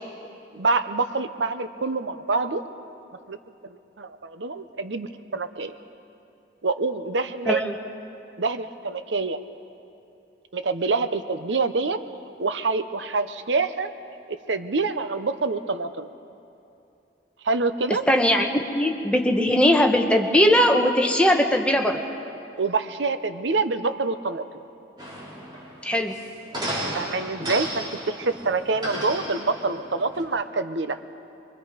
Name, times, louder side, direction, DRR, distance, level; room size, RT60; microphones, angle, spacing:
voice 1, 0.5-2.6 3.3-3.4 3.6-5.8 6.6-7.6 8.4-9.4 10.5-12.0 12.4-13.9 14.3-16.1 17.4-18.0 22.6-24.4 26.9-31.0, right 3 dB, 85° right, 10 dB, 0.8 m, -26 dB
voice 2, 18.1-18.5 18.7-22.0 25.8-26.2, left 1 dB, 5° left, 2 dB, 1.3 m, -19 dB
sound 1, 25.0-30.2, right 1 dB, 25° right, 4.1 m, -34 dB
25.0 x 23.5 x 5.1 m, 2.7 s
head